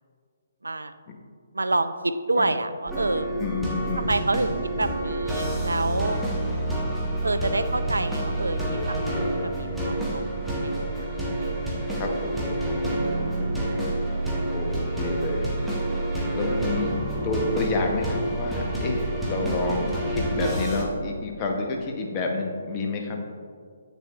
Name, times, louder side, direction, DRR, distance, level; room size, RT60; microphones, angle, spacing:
voice 1, 0.6-0.9 1.5-3.3 4.0-6.2 7.2-9.1 9.4-10.3 10.6-11.8, right 2 dB, 80° right, 12 dB, 0.4 m, -28 dB
sound 1, 2.9-20.8, right 1 dB, ahead, 1.1 m, -28 dB
voice 2, 3.4-4.1 12.0-13.7 14.5-15.8 16.3-17.0 17.2-23.2, left 3 dB, 25° left, 2 dB, 0.9 m, -29 dB
8.4 x 6.8 x 2.4 m, 2.1 s
figure-of-eight pair, 135°, 0 cm